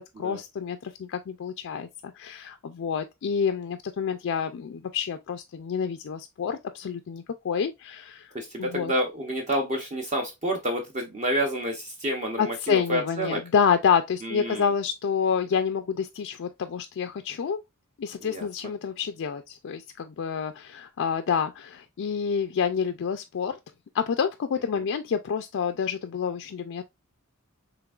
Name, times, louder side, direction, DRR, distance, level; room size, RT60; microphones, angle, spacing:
voice 1, 0.2-8.3 8.6-8.9 12.4-17.6 18.0-23.6 23.9-26.8, left 6 dB, 60° left, 0.4 m, -28 dB
voice 2, 8.3-13.4 14.2-14.7 18.2-18.5 24.7-24.8, equal, 35° right, 0.7 m, -29 dB
5.8 x 3.5 x 2.4 m
head